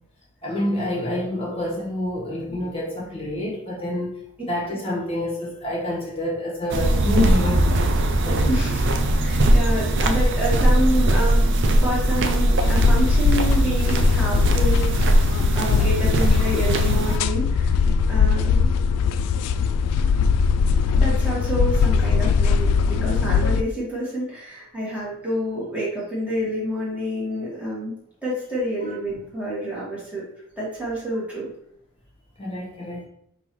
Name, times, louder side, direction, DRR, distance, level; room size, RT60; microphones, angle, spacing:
voice 1, 0.4-7.7 8.2-8.5 28.8-28.9 32.4-33.0, left 1 dB, 25° left, -3 dB, 1.2 m, -27 dB
sound 1, 6.7-17.2, right 1 dB, 55° right, 0.5 m, -20 dB
voice 2, 8.5-8.9 9.2-18.7 20.7-27.9 28.2-30.2 30.6-31.5, right 1 dB, 5° right, -7 dB, 1.5 m, -28 dB
sound 2, 12.6-23.6, left 6 dB, 85° left, 0.3 m, -21 dB
4.8 x 3.7 x 3.0 m, 0.71 s
head